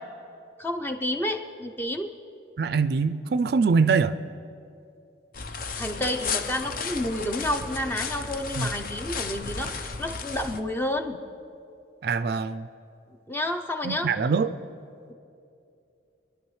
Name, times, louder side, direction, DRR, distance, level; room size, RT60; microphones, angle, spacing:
voice 1, 0.6-2.1 5.8-11.2 13.3-14.1, left 1 dB, 10° left, 5 dB, 0.6 m, -30 dB
voice 2, 2.6-4.2 8.6-8.7 12.0-12.6 13.8-14.5, right 5 dB, 55° right, 12 dB, 0.3 m, -23 dB
sound 1, 5.3-10.6, left 4 dB, 50° left, 0.6 m, -33 dB
25.0 x 11.0 x 3.2 m, 2.6 s
head